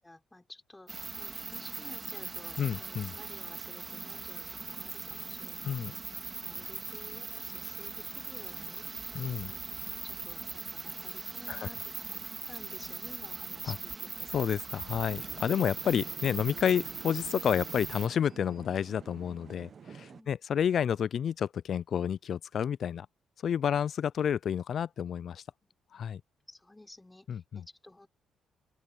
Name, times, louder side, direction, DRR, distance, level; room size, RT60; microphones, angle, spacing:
voice 1, 0.0-6.0 6.4-8.9 9.4-14.3 20.1-20.4 25.6-25.7 26.5-28.1, left 2 dB, 10° left, 6.1 m, -53 dB
sound 1, 0.9-18.1, right 4 dB, 30° right, 2.3 m, -40 dB
voice 2, 2.6-3.1 5.6-5.9 9.1-9.5 11.5-11.7 13.7-13.8 14.3-23.1 23.4-25.4 25.9-26.2 27.3-27.6, left 8 dB, 60° left, 0.3 m, -30 dB
sound 2, 15.1-20.2, right 6 dB, 50° right, 0.9 m, -50 dB
open air
cardioid pair, 90°, 0 cm